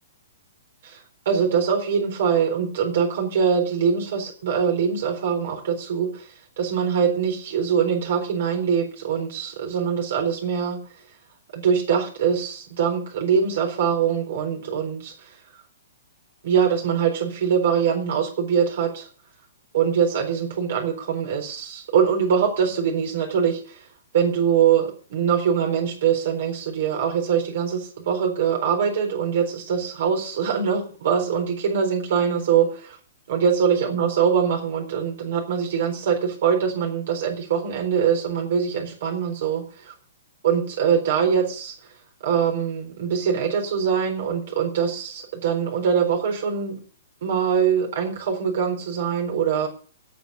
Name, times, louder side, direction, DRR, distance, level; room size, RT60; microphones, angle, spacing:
voice 1, 1.3-6.3 6.6-10.8 11.5-15.3 16.4-19.1 19.7-23.8 24.1-33.0 33.3-39.9 40.4-41.8 42.2-46.8 47.2-49.7, right 7 dB, 60° right, 2 dB, 3.9 m, -23 dB
17.5 x 6.3 x 8.1 m, 0.43 s
hypercardioid pair, 135°, 0 cm